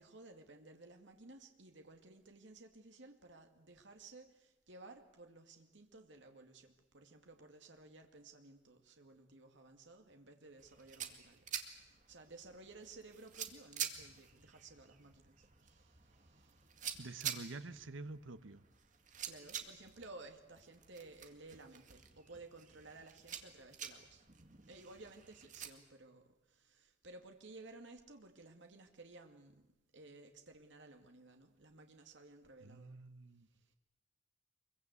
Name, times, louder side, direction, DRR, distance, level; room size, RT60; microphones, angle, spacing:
voice 1, 0.0-16.7 19.2-24.3 24.7-29.7 29.9-33.0 33.5-33.7, right 2 dB, 70° right, 4 dB, 2.3 m, -56 dB
sound 1, 10.6-25.7, right 8 dB, 40° right, 2.1 m, -48 dB
voice 2, 17.0-18.6 32.6-33.5, right 3 dB, 85° right, 12 dB, 1.0 m, -48 dB
25.0 x 23.0 x 8.3 m, 0.92 s
head